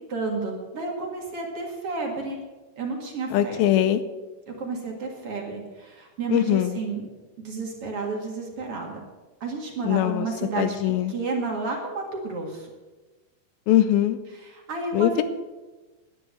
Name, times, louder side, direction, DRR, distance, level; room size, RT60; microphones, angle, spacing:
voice 1, 0.0-2.4 2.8-3.6 4.5-7.1 7.4-9.0 9.4-10.8 11.1-12.7 14.3-15.2, right 3 dB, 45° right, 0 dB, 2.3 m, -31 dB
voice 2, 3.3-4.0 6.3-6.8 9.9-10.3 10.6-11.1 13.7-14.2 14.9-15.2, left 12 dB, 80° left, 12 dB, 2.4 m, -21 dB
11.5 x 10.0 x 7.5 m, 1.2 s
omnidirectional pair, 4.5 m